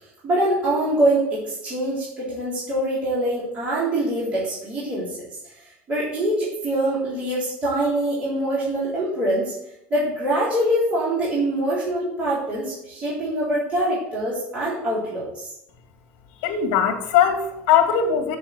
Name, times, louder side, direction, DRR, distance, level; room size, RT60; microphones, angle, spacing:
voice 1, 0.2-5.3 5.9-9.5 9.9-15.5, right 1 dB, 25° right, -9 dB, 4.0 m, -24 dB
voice 2, 16.4-18.4, left 8 dB, 60° left, 2 dB, 2.5 m, -20 dB
7.5 x 7.4 x 8.1 m, 0.82 s
cardioid pair, 170°, 5 cm